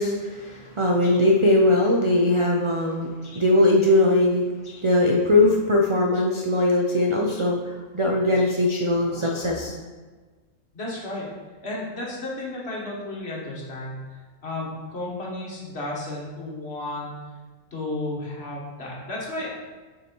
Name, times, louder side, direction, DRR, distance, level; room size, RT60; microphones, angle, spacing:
voice 1, 0.0-9.7, left 1 dB, 55° right, 0 dB, 0.3 m, -21 dB
voice 2, 10.7-11.3 11.6-14.0 14.4-17.2 17.7-19.5, left 2 dB, 50° left, -4 dB, 1.7 m, -33 dB
6.0 x 4.7 x 4.5 m, 1.4 s
omnidirectional pair, 1.4 m